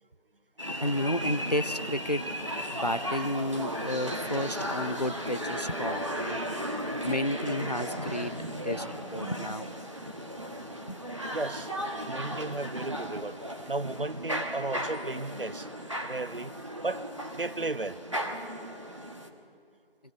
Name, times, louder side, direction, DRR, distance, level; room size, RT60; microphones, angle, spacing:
sound 1, 0.6-19.3, equal, 30° right, 1.4 m, -35 dB
voice 1, 0.8-2.3 2.7-6.4 7.0-8.4 8.6-8.9 9.1-9.7 10.9-11.0, left 1 dB, 40° left, 13 dB, 0.6 m, -31 dB
voice 2, 11.3-11.7 12.1-13.4 13.7-15.7 16.0-16.6 16.8-17.0 17.3-18.0, right 3 dB, 60° right, 14 dB, 0.9 m, -34 dB
23.5 x 18.0 x 8.2 m, 2.2 s
figure-of-eight pair, 170°, 31 cm